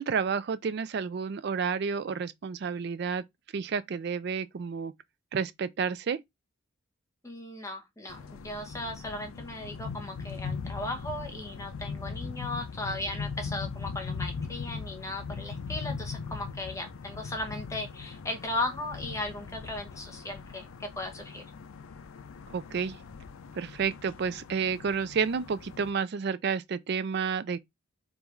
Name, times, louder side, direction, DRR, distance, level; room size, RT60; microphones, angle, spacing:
voice 1, 0.0-3.2 3.5-4.9 5.3-6.2 22.5-23.0 23.6-27.6, right 6 dB, 55° right, 0.4 m, -30 dB
voice 2, 7.2-21.4, left 2 dB, 15° left, 1.0 m, -37 dB
sound 1, 8.1-25.9, left 5 dB, 90° left, 0.5 m, -40 dB
3.7 x 2.6 x 4.5 m
head